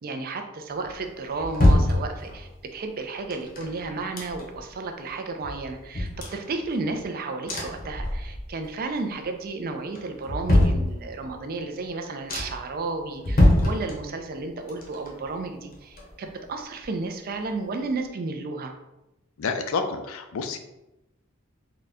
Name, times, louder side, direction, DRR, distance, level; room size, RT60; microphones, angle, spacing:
voice 1, 0.0-18.7, right 3 dB, 45° right, 6 dB, 0.4 m, -33 dB
sound 1, 0.8-2.6 3.3-4.7 5.1-5.2 5.4-7.1 7.5-8.7 9.0-9.5 9.9-11.4 11.8-11.9 12.3-12.8 13.2-14.4 14.7-16.5 16.8-16.9, left 1 dB, 45° left, 0.8 m, -25 dB
voice 2, 19.4-20.6, left 4 dB, 80° left, 7 dB, 0.4 m, -29 dB
3.8 x 2.2 x 3.4 m, 0.94 s
head